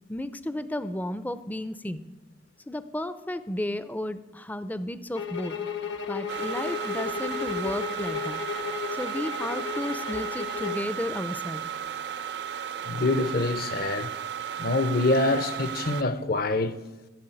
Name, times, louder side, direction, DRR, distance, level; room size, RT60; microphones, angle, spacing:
voice 1, 0.1-2.0 2.7-5.6 6.1-8.4 8.9-11.6, left 1 dB, 10° left, 0.5 m, -33 dB
sound 1, 5.1-10.9, left 6 dB, 70° left, 1.0 m, -34 dB
sound 2, 6.3-16.0, right 9 dB, 60° right, 0.7 m, -35 dB
voice 2, 12.8-14.1 14.6-16.8, left 2 dB, 50° left, 0.7 m, -25 dB
13.5 x 7.1 x 9.0 m
head